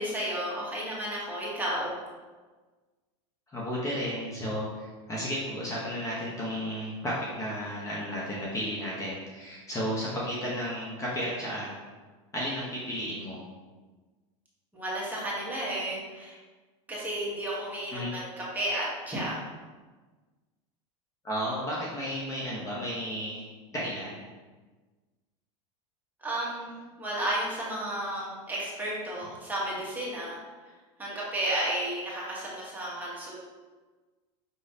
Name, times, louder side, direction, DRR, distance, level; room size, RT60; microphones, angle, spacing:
voice 1, 0.0-1.9 14.7-16.4 16.9-19.4 26.2-30.4 31.0-33.4, right 1 dB, 10° right, -6 dB, 1.2 m, -32 dB
voice 2, 3.5-11.7 12.3-13.4 17.9-18.1 21.2-23.4 23.7-24.2, equal, 20° left, -5 dB, 0.9 m, -33 dB
5.3 x 3.1 x 2.7 m, 1.3 s
supercardioid pair, 125°, 16 cm